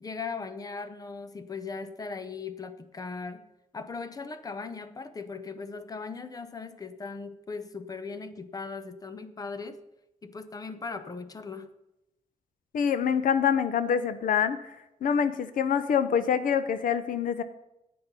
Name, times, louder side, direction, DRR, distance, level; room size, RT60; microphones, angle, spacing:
voice 1, 0.0-3.4 3.7-9.8 10.2-11.7, left 4 dB, 25° left, 11 dB, 0.8 m, -38 dB
voice 2, 12.7-14.6 15.0-17.4, left 7 dB, 85° left, 13 dB, 0.8 m, -25 dB
11.0 x 8.6 x 5.4 m, 0.90 s
wide cardioid pair, 155°, 14 cm